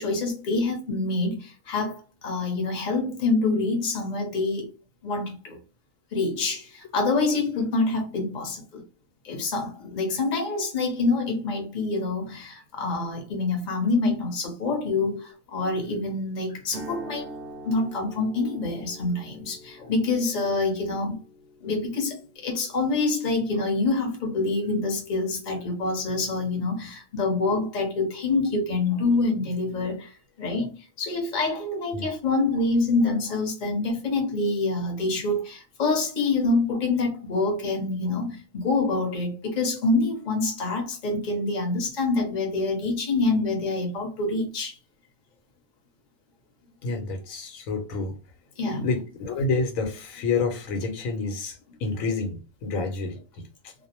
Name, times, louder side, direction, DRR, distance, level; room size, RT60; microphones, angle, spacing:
voice 1, 0.0-4.7 5.0-5.6 6.1-8.8 9.2-17.3 17.6-21.1 21.6-30.1 30.4-30.7 31.0-44.7 48.6-48.9, left 3 dB, 40° left, 0.8 m, -26 dB
sound 1, 16.7-24.7, right 1 dB, 60° right, 0.6 m, -45 dB
voice 2, 46.8-48.2 48.8-53.7, left 4 dB, 90° left, 1.1 m, -29 dB
2.5 x 2.0 x 2.8 m
omnidirectional pair, 1.4 m